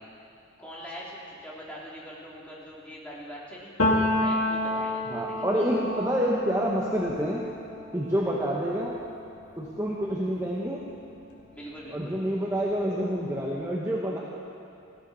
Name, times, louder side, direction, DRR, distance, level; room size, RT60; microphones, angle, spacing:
voice 1, 0.6-3.7 4.2-5.7 11.5-12.2, equal, 5° left, -6 dB, 2.9 m, -42 dB
Piano, 3.8-11.4 11.8-13.3, left 1 dB, 80° left, 2.2 m, -31 dB
voice 2, 5.0-7.4 7.9-9.0 9.6-10.8 11.9-14.2, equal, 15° right, -5 dB, 1.2 m, -28 dB
19.5 x 16.0 x 4.2 m, 2.5 s
head